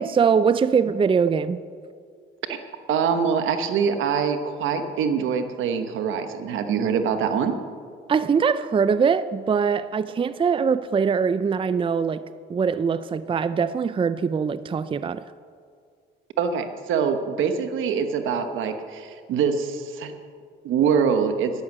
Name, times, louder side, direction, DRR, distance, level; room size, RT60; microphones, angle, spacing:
voice 1, 0.0-1.6 8.1-12.2 12.5-15.2, right 6 dB, 25° right, 0.4 m, -22 dB
voice 2, 2.9-7.6 16.4-20.1 20.6-21.5, right 6 dB, 85° right, 1.2 m, -24 dB
11.5 x 11.0 x 7.3 m
cardioid pair, 90°, 20 cm